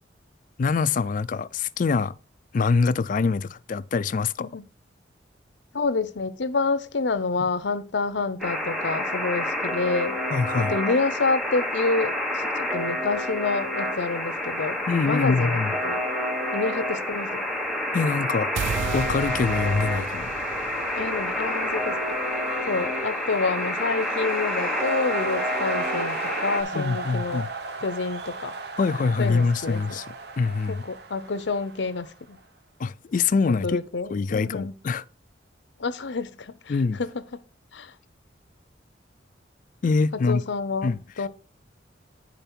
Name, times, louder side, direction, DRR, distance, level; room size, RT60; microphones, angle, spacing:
voice 1, 0.6-2.2 2.5-4.5 10.3-10.8 14.9-15.7 17.9-18.5 18.9-20.3 26.7-27.5 28.8-30.8 32.8-33.8 34.1-35.0 36.7-37.0 39.8-40.4 40.8-41.3, left 4 dB, 45° left, 0.3 m, -24 dB
voice 2, 5.7-10.2 10.6-14.8 15.1-16.0 16.5-17.5 20.9-22.0 22.7-27.4 27.8-28.5 29.2-30.0 30.7-32.4 33.6-34.8 35.8-36.7 37.0-37.4 37.7-37.9 40.3-41.3, left 3 dB, 70° left, 0.7 m, -28 dB
Alarm, 8.4-26.6, left 1 dB, ahead, 1.1 m, -28 dB
sound 1, 18.6-24.7, right 6 dB, 85° right, 0.4 m, -36 dB
sound 2, 20.7-32.4, right 3 dB, 60° right, 0.9 m, -36 dB
9.0 x 5.2 x 4.3 m
head